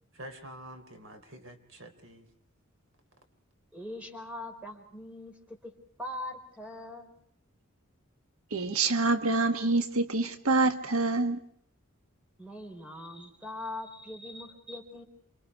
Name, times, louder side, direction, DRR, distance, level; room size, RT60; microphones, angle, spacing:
voice 1, 0.1-2.3, right 1 dB, 60° right, 7 dB, 3.5 m, -47 dB
voice 2, 3.7-5.7 6.0-7.1 12.4-15.0, left 1 dB, 5° right, 4 dB, 4.4 m, -41 dB
voice 3, 8.5-11.4, right 3 dB, 85° right, 8 dB, 1.5 m, -26 dB
29.0 x 26.0 x 4.7 m, 0.62 s
head